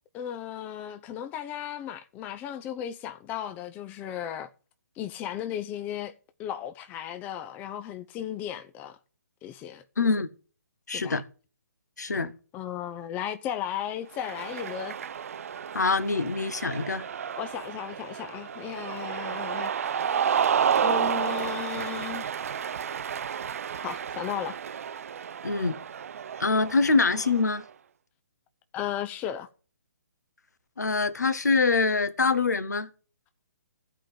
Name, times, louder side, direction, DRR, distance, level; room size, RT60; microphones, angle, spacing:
voice 1, 0.1-4.5 5.0-6.1 6.4-9.0 9.4-9.8 10.9-11.2 12.5-15.0 17.4-19.7 20.8-22.4 23.8-24.6 28.7-29.5, left 10 dB, 20° left, 0.6 m, -35 dB
voice 2, 10.0-10.3 10.9-11.2 12.0-12.3 15.7-17.0 25.4-25.8 26.4-27.6 30.8-32.9, left 4 dB, 75° left, 1.3 m, -24 dB
Cheering, 14.1-27.6, right 8 dB, 55° right, 0.4 m, -31 dB
15.0 x 5.1 x 7.3 m
figure-of-eight pair, 135°, 9 cm